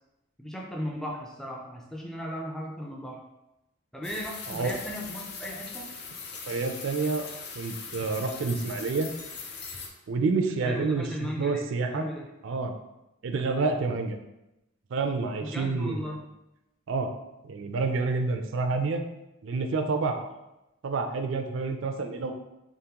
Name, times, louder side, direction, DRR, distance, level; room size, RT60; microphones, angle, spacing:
voice 1, 0.4-3.2 3.9-5.9 7.9-8.0 10.6-12.3 15.4-16.2, equal, ahead, -2 dB, 0.4 m, -36 dB
sound 1, 4.0-9.9, left 5 dB, 55° left, 0.5 m, -40 dB
voice 2, 6.5-7.3 7.6-9.1 10.1-12.1 12.4-12.7 13.2-14.2 14.9-16.1 16.9-17.1 17.4-19.0 19.4-20.3 20.8-22.3, right 4 dB, 65° right, 6 dB, 0.4 m, -28 dB
3.7 x 3.6 x 2.9 m, 0.92 s
head